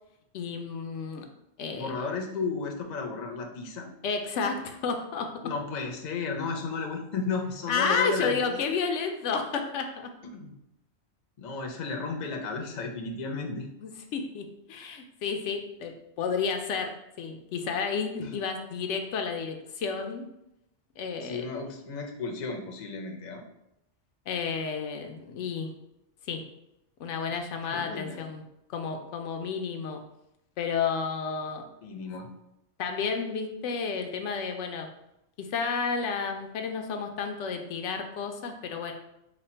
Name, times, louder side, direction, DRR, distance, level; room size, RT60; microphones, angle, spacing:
voice 1, 0.3-1.3 1.6-1.9 4.0-5.3 7.7-10.1 13.8-20.2 21.0-21.4 24.3-25.7 26.3-26.4 27.0-28.4 28.7-30.0 30.6-31.6 32.8-34.9 35.4-38.9, left 5 dB, 85° left, 5 dB, 0.9 m, -31 dB
voice 2, 1.7-3.9 5.4-8.6 10.3-10.6 11.4-13.7 18.2-18.3 21.2-23.4 27.7-28.2 31.8-32.3, left 4 dB, 50° left, 2 dB, 0.6 m, -33 dB
4.2 x 2.2 x 4.3 m, 0.85 s
omnidirectional pair, 1.2 m